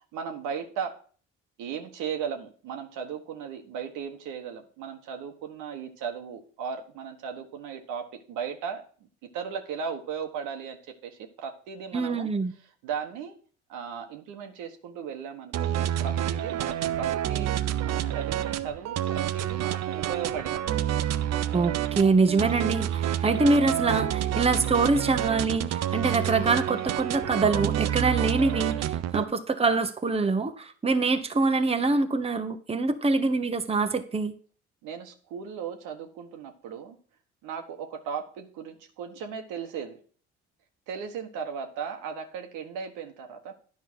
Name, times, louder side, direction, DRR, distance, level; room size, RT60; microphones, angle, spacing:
voice 1, 0.1-0.9 1.6-8.8 9.2-12.3 12.8-13.3 13.7-17.5 17.8-20.6 29.1-29.4 34.8-37.0 37.4-40.0 40.9-43.5, right 7 dB, 75° right, 5 dB, 1.4 m, -36 dB
voice 2, 11.9-12.5 21.5-34.3, right 3 dB, 20° right, 7 dB, 1.0 m, -25 dB
sound 1, 15.5-29.2, right 11 dB, 55° right, 0.7 m, -28 dB
10.0 x 5.2 x 6.2 m, 0.43 s
hypercardioid pair, 60°, 31 cm